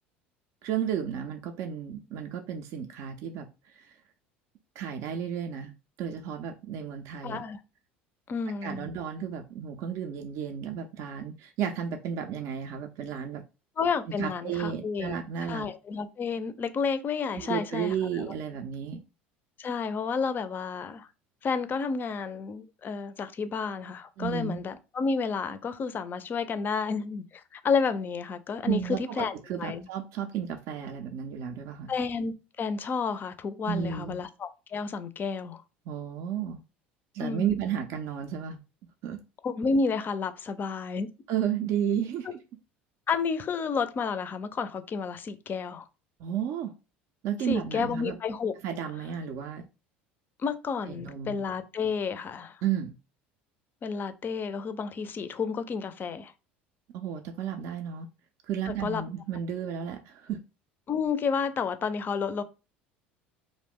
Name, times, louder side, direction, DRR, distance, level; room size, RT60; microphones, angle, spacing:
voice 1, 0.6-3.5 3.8-3.9 4.8-5.7 6.0-7.4 8.6-13.4 14.2-15.7 17.4-19.0 24.2-24.6 28.6-31.9 33.6-34.2 35.9-36.6 37.1-38.6 39.0-39.2 41.3-42.4 46.2-46.7 47.2-48.2 48.6-49.7 50.9-51.4 52.6-52.9 56.9-58.1 58.5-60.4, right 8 dB, 55° right, 0.4 m, -33 dB
voice 2, 7.2-7.6 8.3-8.9 13.8-15.1 15.5-18.3 19.6-21.1 21.4-29.9 31.9-35.6 37.2-37.5 39.4-41.1 43.1-45.9 47.4-48.5 50.4-52.6 53.8-56.3 58.7-59.0 60.9-62.4, left 5 dB, 35° left, 0.4 m, -31 dB
2.4 x 2.1 x 3.5 m
hypercardioid pair, 75°, 6 cm